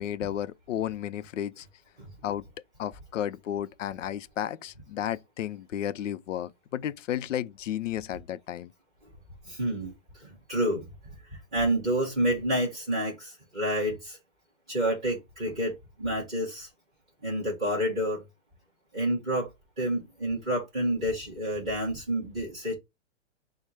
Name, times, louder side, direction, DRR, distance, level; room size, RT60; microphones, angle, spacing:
voice 1, 0.0-1.7 2.2-2.4 2.8-8.7, left 11 dB, 80° left, 0.5 m, -33 dB
voice 2, 9.4-14.2 14.7-16.7 17.2-18.2 18.9-19.5 19.8-22.7, right 1 dB, 5° right, 0.4 m, -29 dB
4.8 x 2.1 x 4.2 m
hypercardioid pair, 175°, 37 cm